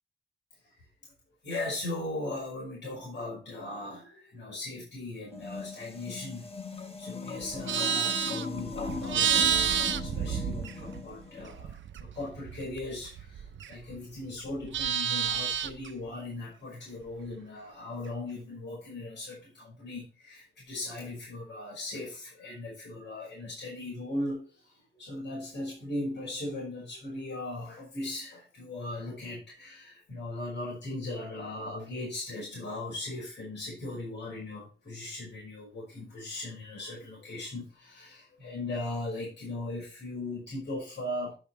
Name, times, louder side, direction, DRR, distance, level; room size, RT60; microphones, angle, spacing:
voice 1, 1.4-6.5 7.0-41.3, left 2 dB, 60° left, -4 dB, 5.4 m, -38 dB
sound 1, 5.3-11.6, left 4 dB, 30° left, 1.3 m, -39 dB
Livestock farm animals working animals, 7.4-11.1 11.4-14.0 14.3-15.9, right 8 dB, 70° right, 0.7 m, -30 dB
10.5 x 5.4 x 4.5 m, 0.35 s
wide cardioid pair, 135°, 20 cm